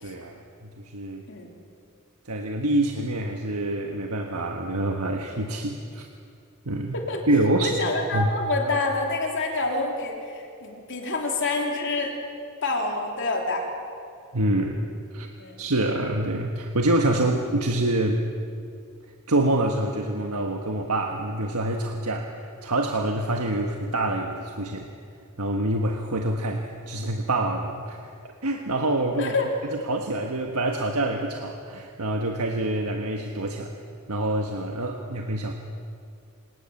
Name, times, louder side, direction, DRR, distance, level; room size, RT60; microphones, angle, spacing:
voice 1, 0.0-1.3 2.2-6.1 6.6-6.9 7.3-7.8 8.1-8.3 14.3-14.8 15.1-15.3 15.6-18.2 19.3-24.9 25.4-29.3 29.7-33.7 34.1-35.5, right 1 dB, 85° right, 3 dB, 1.5 m, -26 dB
voice 2, 7.6-12.2 12.6-13.7 15.4-15.6 29.2-29.5, left 3 dB, 55° left, 1 dB, 3.3 m, -27 dB
27.5 x 18.5 x 7.2 m, 2.4 s
head